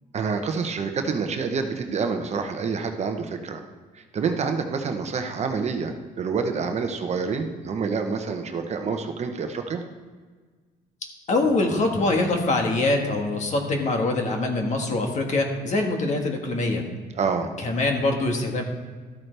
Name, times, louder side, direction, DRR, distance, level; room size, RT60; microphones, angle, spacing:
voice 1, 0.1-3.6 3.9-9.8 17.2-17.5, right 5 dB, 40° right, 5 dB, 0.9 m, -27 dB
voice 2, 11.3-16.8 17.6-18.6, left 2 dB, 45° left, 3 dB, 1.6 m, -24 dB
13.0 x 8.4 x 3.4 m, 1.5 s
cardioid pair, 110°, 17 cm